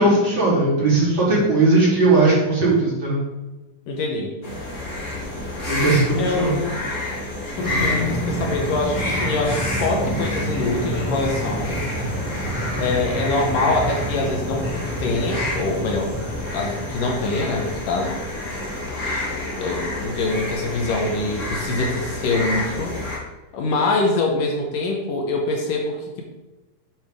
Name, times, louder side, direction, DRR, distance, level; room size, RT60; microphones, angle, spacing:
voice 1, 0.0-3.2 5.6-6.5, right 2 dB, 35° right, -8 dB, 3.5 m, -18 dB
voice 2, 3.9-4.3 6.2-6.8 7.5-11.8 12.8-16.1 16.5-18.2 19.6-22.9 23.5-26.2, left 3 dB, 75° left, 1 dB, 2.5 m, -24 dB
sound 1, 4.4-23.2, left 1 dB, 35° left, 1.2 m, -29 dB
sound 2, 7.6-18.3, right 1 dB, 15° left, 0.5 m, -29 dB
7.8 x 7.2 x 3.7 m, 1.1 s
omnidirectional pair, 4.1 m